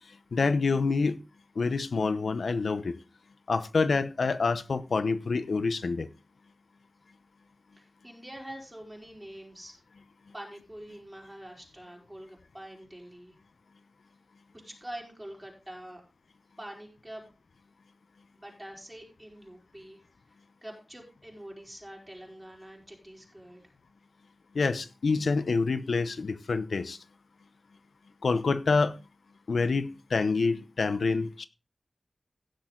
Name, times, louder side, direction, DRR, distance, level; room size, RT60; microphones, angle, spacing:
voice 1, 0.3-1.2 1.6-3.0 3.5-6.1 24.5-27.0 28.2-28.9 29.5-31.4, left 4 dB, 85° left, 0.8 m, -27 dB
voice 2, 7.8-9.8 10.3-13.3 14.6-16.0 16.6-17.4 18.3-20.0 20.6-23.7, right 1 dB, 15° right, 4.1 m, -45 dB
16.5 x 6.3 x 3.8 m
cardioid pair, 45°, 0 cm